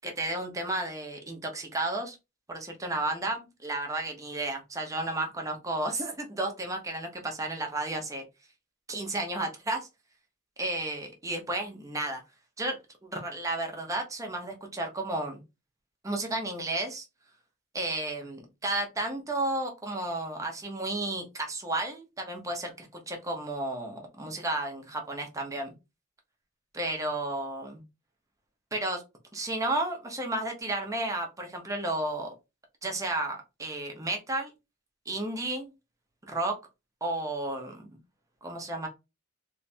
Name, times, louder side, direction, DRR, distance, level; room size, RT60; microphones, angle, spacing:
voice 1, 0.0-2.2 2.5-8.2 8.9-9.9 10.6-12.2 12.6-15.4 16.0-17.1 17.7-25.7 26.7-27.8 28.7-29.0 29.3-32.3 32.8-34.5 35.1-35.7 36.2-36.6 37.0-38.0 38.4-38.9, right 2 dB, 15° right, 2 dB, 0.8 m, -32 dB
3.3 x 3.1 x 2.7 m, 0.25 s
head